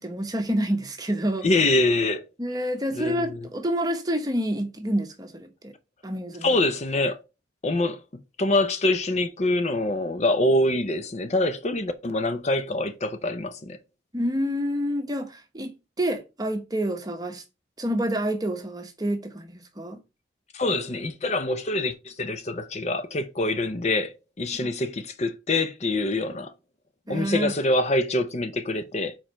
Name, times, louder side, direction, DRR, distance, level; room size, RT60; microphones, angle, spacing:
voice 1, 0.0-1.5 2.4-5.7 6.0-6.5 14.1-17.4 17.8-20.0 27.1-27.5, equal, 20° right, 0.9 m, -28 dB
voice 2, 1.4-2.2 2.9-3.5 6.4-7.2 7.6-8.0 8.4-13.8 20.5-26.5 27.1-29.2, left 2 dB, 35° left, 0.6 m, -25 dB
4.8 x 4.4 x 5.6 m
head